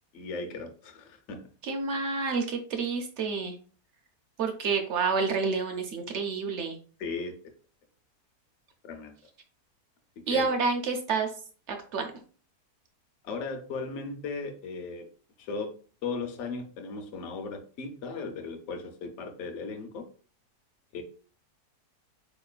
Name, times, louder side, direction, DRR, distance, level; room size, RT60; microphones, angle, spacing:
voice 1, 0.1-1.4 7.0-7.3 8.8-9.1 10.3-10.5 13.2-15.1 15.4-15.7 16.0-20.0 20.9-21.0, left 4 dB, 60° left, 5 dB, 0.8 m, -36 dB
voice 2, 1.6-3.5 4.4-6.8 10.3-11.3 11.7-12.1, right 4 dB, 70° right, 4 dB, 0.7 m, -29 dB
4.3 x 3.0 x 2.3 m, 0.41 s
omnidirectional pair, 1.7 m